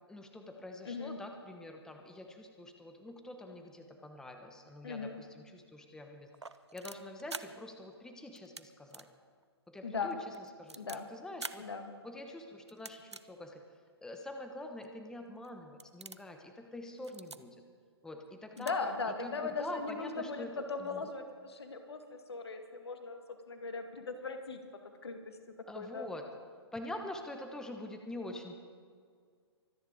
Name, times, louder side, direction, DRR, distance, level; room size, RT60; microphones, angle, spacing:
voice 1, 0.1-6.3 6.7-9.1 9.7-11.7 12.0-13.6 14.0-17.6 18.0-18.8 19.2-21.0 25.7-26.3 26.7-28.5, left 1 dB, 5° left, 5 dB, 1.0 m, -45 dB
voice 2, 0.9-1.2 4.8-5.2 9.8-10.2 10.8-11.1 11.6-11.9 18.6-23.2 23.5-24.6 25.0-25.2 25.7-26.1, left 4 dB, 70° left, 7 dB, 1.9 m, -38 dB
sound 1, 6.3-7.4 8.3-8.6 8.9-9.1 9.4-9.5 10.1-11.0 11.4-11.6 12.7-13.2 13.9-14.0 14.8-14.9 15.4-15.5 15.8-16.3 17.0-17.4 18.3-18.4 18.6-18.7 19.0-19.1, right 4 dB, 90° right, 0.7 m, -45 dB
24.5 x 10.0 x 5.0 m, 2.1 s
figure-of-eight pair, 120°, 14 cm